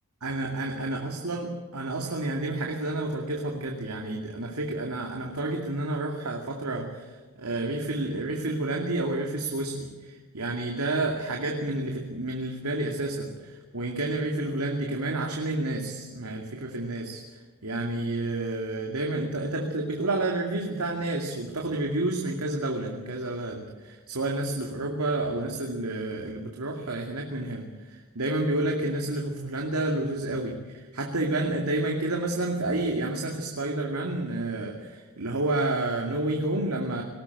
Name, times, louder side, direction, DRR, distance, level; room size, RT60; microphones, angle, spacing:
voice 1, 0.2-37.0, right 2 dB, 85° right, 1 dB, 2.5 m, -30 dB
20.5 x 17.5 x 8.2 m, 1.3 s
head